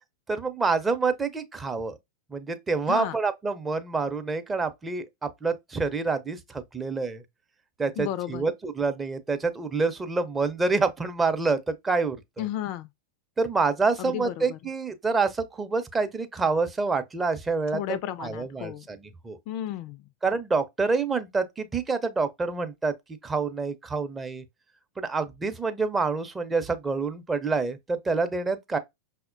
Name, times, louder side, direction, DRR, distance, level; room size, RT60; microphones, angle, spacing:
voice 1, 0.3-2.0 2.3-7.2 7.8-12.4 13.4-19.4 20.2-22.9 23.2-24.4 25.0-28.8, right 4 dB, 15° right, 0.5 m, -27 dB
voice 2, 8.0-8.4 12.4-12.9 14.0-14.6 17.7-18.9 19.5-20.0, left 11 dB, 45° left, 0.3 m, -33 dB
5.7 x 2.1 x 2.5 m
figure-of-eight pair, 90°, 0 cm